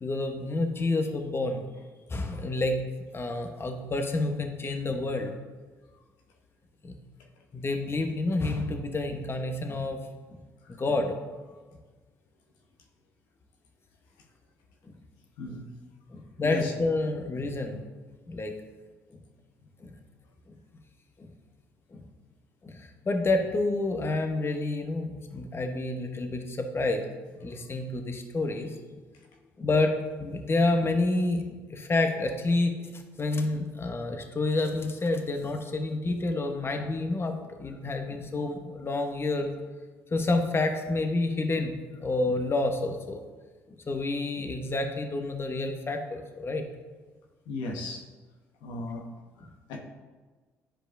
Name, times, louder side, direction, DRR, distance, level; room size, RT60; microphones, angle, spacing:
voice 1, 0.0-1.6 2.1-2.8 3.1-5.3 6.8-7.0 7.5-10.1 10.8-11.1 16.1-17.8 18.3-18.5 19.8-19.9 21.2-21.3 21.9-22.0 22.6-27.0 27.4-28.7 29.6-31.4 31.7-39.5 40.1-41.7 42.0-43.2 43.9-46.6, left 2 dB, 35° left, 5 dB, 0.9 m, -29 dB
voice 2, 47.5-48.0 48.6-49.0 49.4-49.8, left 2 dB, 80° left, 1 dB, 0.9 m, -36 dB
10.0 x 4.8 x 2.6 m, 1.4 s
hypercardioid pair, 55°, 8 cm